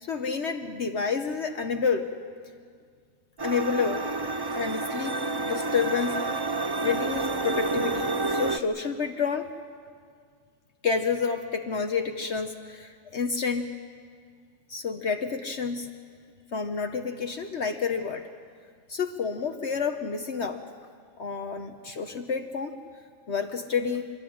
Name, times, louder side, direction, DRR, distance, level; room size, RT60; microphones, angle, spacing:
voice 1, 0.0-2.1 3.4-4.0 4.5-6.2 6.8-9.5 10.8-13.8 14.7-15.9 16.5-18.3 18.9-20.6 21.2-22.8 23.3-24.0, left 5 dB, 55° left, 6 dB, 1.2 m, -29 dB
sound 1, 3.4-8.6, right 3 dB, 40° right, 0.3 m, -29 dB
27.5 x 13.5 x 10.0 m, 2.1 s
omnidirectional pair, 1.4 m